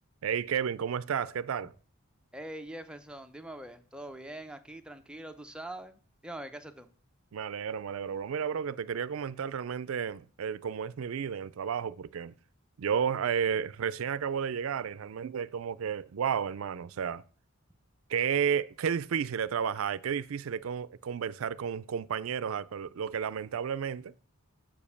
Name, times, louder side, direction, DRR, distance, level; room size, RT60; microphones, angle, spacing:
voice 1, 0.2-1.7 7.3-12.3 12.8-17.2 18.1-24.1, right 7 dB, 70° right, 0.4 m, -32 dB
voice 2, 2.3-6.9, right 1 dB, 5° right, 0.6 m, -43 dB
7.2 x 5.2 x 7.0 m
head